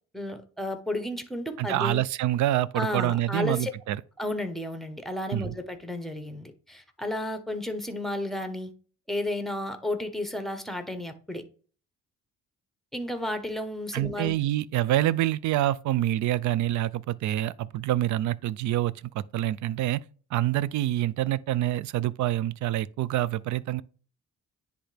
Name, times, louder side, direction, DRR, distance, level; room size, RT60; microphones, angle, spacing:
voice 1, 0.1-2.0 2.7-3.7 4.2-8.7 9.1-11.4 12.9-14.3, left 1 dB, ahead, 1.0 m, -32 dB
voice 2, 1.6-4.0 5.3-5.5 13.9-20.0 20.3-23.8, right 14 dB, 70° right, 0.4 m, -26 dB
10.0 x 3.4 x 3.3 m
cardioid pair, 90°, 30 cm